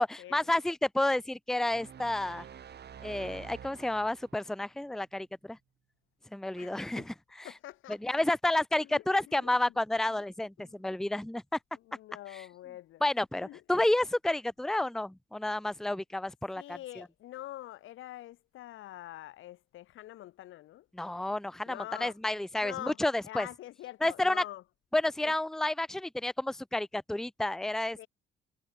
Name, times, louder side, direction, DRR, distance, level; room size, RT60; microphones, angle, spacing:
voice 1, 0.0-2.4 3.0-5.6 6.3-7.5 8.0-11.6 13.0-17.0 20.9-23.5 24.0-24.4 24.9-28.1, left 1 dB, ahead, 0.7 m, -30 dB
sound 1, 1.7-4.4, right 8 dB, 55° right, 4.8 m, -48 dB
voice 2, 6.6-7.1 7.4-8.2 8.8-9.7 10.1-10.2 10.6-10.8 11.7-13.0 13.4-13.6 16.5-20.9 21.7-22.1 22.6-23.0 23.2-24.6 25.2-25.3 28.0-28.1, left 14 dB, 85° left, 2.1 m, -45 dB
cardioid pair, 90°, 20 cm